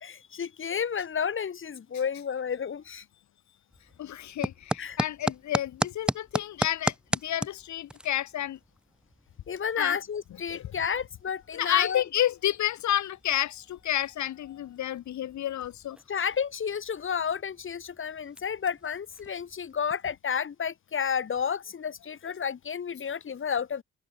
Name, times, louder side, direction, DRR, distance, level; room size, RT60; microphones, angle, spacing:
voice 1, 0.0-3.0 4.8-5.0 9.5-12.0 16.1-23.8, left 7 dB, 40° left, 2.1 m, -31 dB
sound 1, 3.7-20.0, equal, 5° right, 4.0 m, -38 dB
voice 2, 4.0-6.9 7.2-8.6 9.8-10.0 10.5-10.7 11.5-16.0, left 12 dB, 70° left, 1.6 m, -30 dB
open air
cardioid pair, 90°, 30 cm